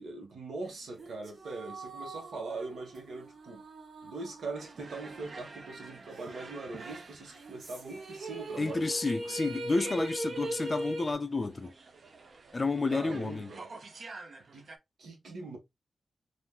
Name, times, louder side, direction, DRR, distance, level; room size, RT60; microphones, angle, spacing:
voice 1, 0.0-3.6 4.0-8.9 12.9-13.7 14.5-14.7 15.0-15.6, right 3 dB, 90° right, 1.1 m, -41 dB
sound 1, 1.0-5.6 5.9-6.0 7.3-11.1, right 1 dB, 70° right, 0.9 m, -40 dB
sound 2, 4.5-14.8, right 3 dB, 50° right, 0.5 m, -49 dB
voice 2, 8.6-11.7 12.5-13.5, left 3 dB, 30° left, 0.3 m, -30 dB
3.5 x 2.5 x 2.3 m
wide cardioid pair, 155°, 0 cm